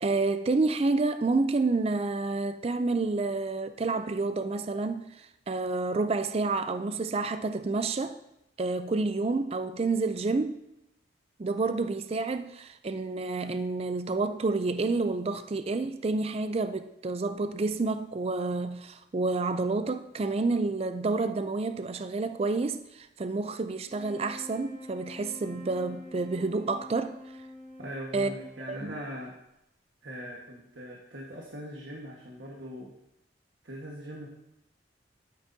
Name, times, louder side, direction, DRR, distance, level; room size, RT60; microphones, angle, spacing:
voice 1, 0.0-8.2 8.6-10.6 11.4-27.2 28.1-28.3 28.7-29.0, right 3 dB, 35° right, 0.4 m, -29 dB
sound 1, 23.8-29.3, left 1 dB, 50° right, 4.1 m, -46 dB
voice 2, 27.8-29.3 30.0-32.9 33.6-34.3, equal, 75° right, 1.5 m, -41 dB
12.0 x 9.3 x 2.7 m
head